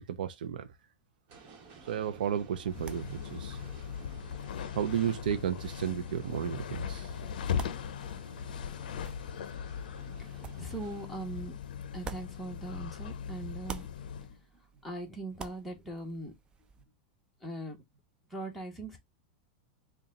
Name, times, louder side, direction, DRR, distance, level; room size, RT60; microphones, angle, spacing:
voice 1, 0.1-0.8 1.8-3.6 4.7-7.2, right 9 dB, 85° right, 0.5 m, -33 dB
sound 1, 1.3-11.1, right 4 dB, 40° right, 1.2 m, -55 dB
sound 2, 2.0-13.1 13.4-16.8, right 5 dB, 20° right, 0.4 m, -51 dB
sound 3, 2.6-14.3, left 7 dB, 90° left, 0.5 m, -39 dB
voice 2, 9.9-11.6 11.9-16.3 17.4-17.8 18.3-19.0, right 2 dB, ahead, 1.2 m, -41 dB
4.0 x 2.3 x 3.7 m
supercardioid pair, 140°, 5 cm